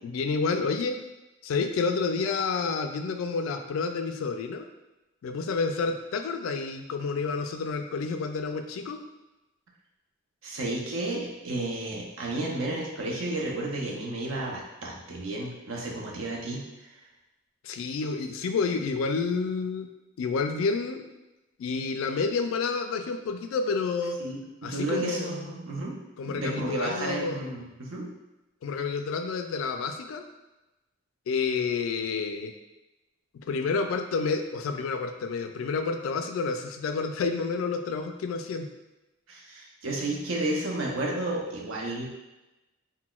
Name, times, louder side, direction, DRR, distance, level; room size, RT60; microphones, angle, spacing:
voice 1, 0.0-1.0 1.4-4.7 5.2-9.0 17.6-19.9 20.2-21.1 21.6-24.2 24.6-25.5 26.2-27.6 28.6-30.2 31.3-32.6 33.3-38.7, left 4 dB, 75° left, 7 dB, 0.3 m, -29 dB
voice 2, 10.4-16.6 24.2-26.0 26.3-28.1 39.3-42.2, right 2 dB, 70° right, -2 dB, 0.6 m, -32 dB
3.8 x 2.1 x 2.3 m, 1.0 s
head